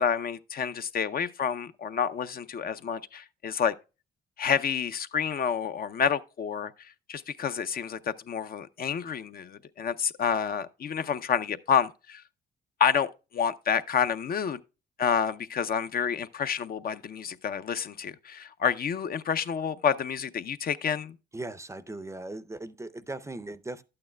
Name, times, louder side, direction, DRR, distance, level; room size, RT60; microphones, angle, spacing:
voice 1, 0.0-3.7 4.4-6.7 7.1-12.2 12.8-14.6 15.0-21.2, left 7 dB, 50° left, 0.5 m, -29 dB
voice 2, 21.3-23.8, right 2 dB, 15° right, 0.5 m, -38 dB
11.5 x 8.7 x 2.2 m
cardioid pair, 90°, 20 cm